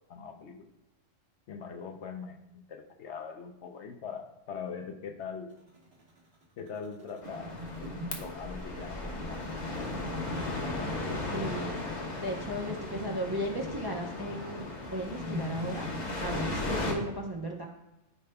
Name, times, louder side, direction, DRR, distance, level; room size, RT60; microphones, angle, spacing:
voice 1, 0.1-0.7 1.5-5.5 6.6-7.5 7.8-9.6, left 6 dB, 65° left, 5 dB, 1.0 m, -42 dB
sound 1, 5.5-16.2, left 1 dB, 55° right, 1.6 m, -43 dB
sound 2, 7.2-16.9, left 2 dB, 35° left, 1.1 m, -36 dB
voice 2, 11.3-11.8 12.2-14.6 14.9-15.9 16.2-17.7, equal, 20° right, -1 dB, 0.8 m, -35 dB
13.0 x 5.0 x 2.3 m, 0.93 s
omnidirectional pair, 1.3 m